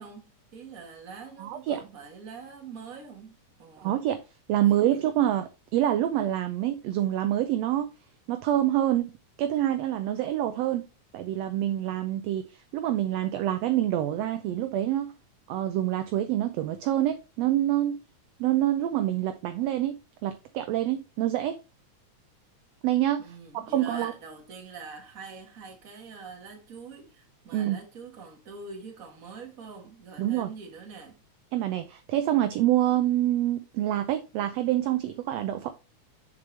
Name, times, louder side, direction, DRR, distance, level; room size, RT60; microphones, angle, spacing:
voice 1, 0.0-4.1 4.6-5.0 23.2-31.2, right 5 dB, 35° right, 1.6 m, -45 dB
voice 2, 1.4-1.8 3.8-4.2 4.5-7.9 8.3-9.1 9.4-10.9 11.1-15.1 15.5-18.0 18.4-21.6 22.8-23.2 23.7-24.1 27.5-27.8 30.2-30.5 31.5-35.7, right 12 dB, 80° right, 1.5 m, -26 dB
7.0 x 5.2 x 3.2 m
omnidirectional pair, 3.4 m